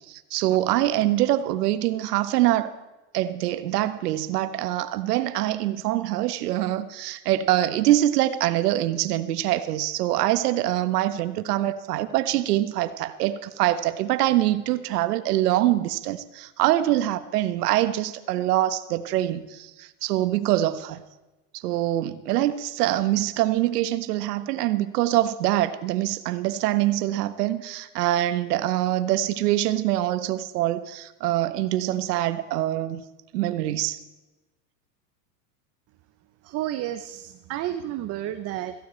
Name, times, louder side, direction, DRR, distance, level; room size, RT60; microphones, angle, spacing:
voice 1, 0.0-2.7 3.1-21.0 21.5-33.0 33.3-34.0, right 14 dB, 75° right, 12 dB, 1.3 m, -24 dB
voice 2, 36.4-38.7, right 13 dB, 30° right, 9 dB, 0.7 m, -31 dB
16.5 x 15.0 x 4.5 m, 1.1 s
supercardioid pair, 140°, 48 cm